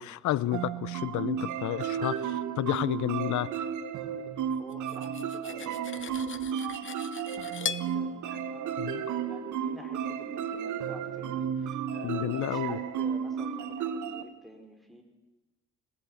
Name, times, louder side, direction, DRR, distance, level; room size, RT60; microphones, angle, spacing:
voice 1, 0.0-3.6 8.8-9.0 12.0-12.8, left 13 dB, 75° left, 20 dB, 0.7 m, -31 dB
sound 1, 0.5-14.2, right 8 dB, 75° right, 1.5 m, -33 dB
voice 2, 4.2-15.0, equal, ahead, 2 dB, 4.6 m, -50 dB
Cutlery silverware, 4.7-7.9, left 8 dB, 40° left, 0.8 m, -39 dB
21.5 x 17.0 x 8.6 m, 1.1 s
cardioid pair, 90°, 30 cm